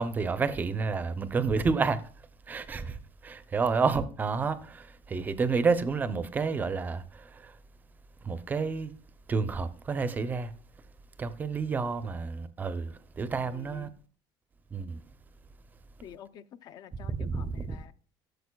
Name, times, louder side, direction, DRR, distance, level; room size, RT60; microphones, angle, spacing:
voice 1, 0.0-2.0 2.5-3.0 3.2-7.6 8.2-8.9 9.3-10.5 11.2-13.9 14.7-15.0 17.1-17.8, right 4 dB, 15° right, 0.5 m, -30 dB
voice 2, 13.5-13.9 16.0-17.9, left 9 dB, 40° left, 0.5 m, -48 dB
12.5 x 6.7 x 2.2 m
cardioid pair, 175°, 10 cm